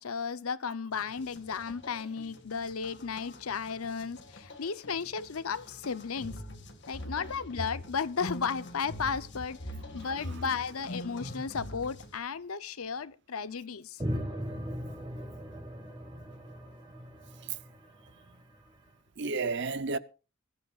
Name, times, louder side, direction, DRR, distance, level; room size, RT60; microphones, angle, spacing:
voice 1, 0.0-6.4 6.9-9.6 9.9-14.0, left 5 dB, 85° left, 0.7 m, -34 dB
sound 1, 0.9-12.2, left 1 dB, 55° left, 1.9 m, -44 dB
voice 2, 9.9-10.4 17.4-17.6 19.2-20.0, right 4 dB, 55° right, 0.7 m, -33 dB
sound 2, 14.0-18.7, equal, 20° right, 1.8 m, -39 dB
21.5 x 14.0 x 2.4 m
head